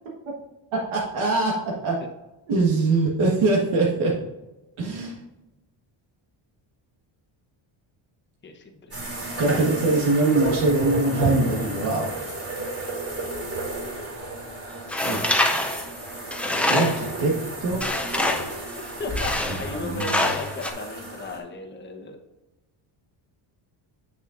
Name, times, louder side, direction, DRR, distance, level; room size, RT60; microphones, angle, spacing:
voice 1, 0.9-1.5 1.8-2.0 2.5-4.1 4.8-5.2 9.4-12.1 15.0-15.4 16.6-17.3 17.6-17.8 19.8-20.3, right 3 dB, 90° right, -3 dB, 1.6 m, -23 dB
voice 2, 8.4-9.4 19.0-22.2, left 3 dB, 25° left, 3 dB, 0.9 m, -36 dB
sound 1, 8.9-21.4, right 1 dB, 30° right, 2.5 m, -32 dB
Tools, 14.9-17.2 17.8-18.6 19.2-19.7 20.0-20.7, left 1 dB, 5° left, 0.4 m, -25 dB
8.1 x 6.5 x 2.5 m, 1.0 s
cardioid pair, 145°, 47 cm